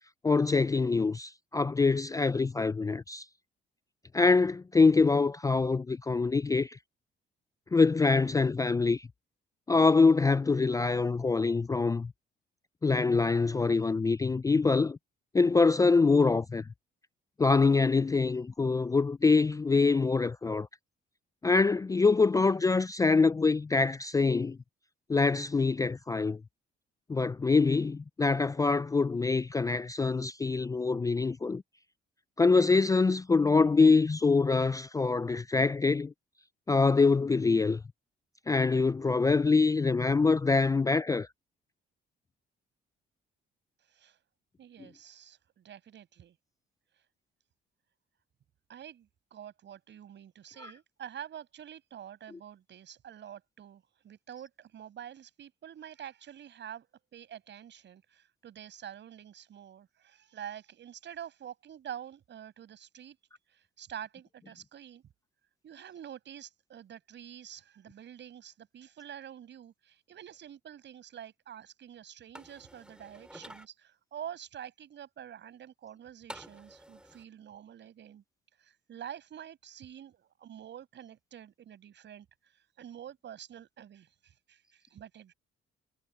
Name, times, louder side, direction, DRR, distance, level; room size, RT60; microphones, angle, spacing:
voice 1, 0.2-3.2 4.1-6.8 7.7-9.1 9.7-12.1 12.8-15.0 15.3-16.6 17.4-20.7 21.4-24.6 25.1-26.4 27.1-31.6 32.4-36.1 36.7-37.8 38.5-41.3 50.6-50.7, left 4 dB, 15° left, 0.3 m, -25 dB
voice 2, 44.6-46.3 48.7-56.9 57.1-63.2 63.5-65.0 65.6-78.2 78.6-82.3 82.8-85.3, right 9 dB, 65° right, 7.8 m, -47 dB
sound 1, 72.3-73.7 76.3-77.2, right 1 dB, 5° right, 4.9 m, -49 dB
cardioid pair, 90°, 20 cm